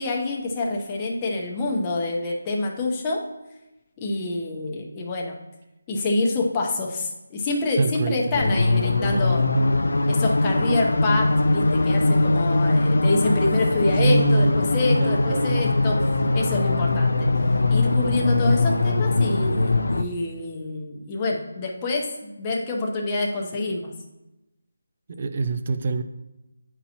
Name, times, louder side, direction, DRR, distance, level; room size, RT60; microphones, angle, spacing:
voice 1, 0.0-3.2 4.0-5.4 5.9-9.5 10.1-16.0 16.3-17.3 17.7-23.9, left 2 dB, 20° left, -1 dB, 0.7 m, -26 dB
voice 2, 7.8-8.4 14.0-14.6 15.0-15.6 25.1-26.0, right 3 dB, 40° right, 9 dB, 0.4 m, -24 dB
sound 1, 8.3-20.0, left 2 dB, 80° left, 0.4 m, -21 dB
9.9 x 4.2 x 2.8 m, 0.96 s
figure-of-eight pair, 170°, 0 cm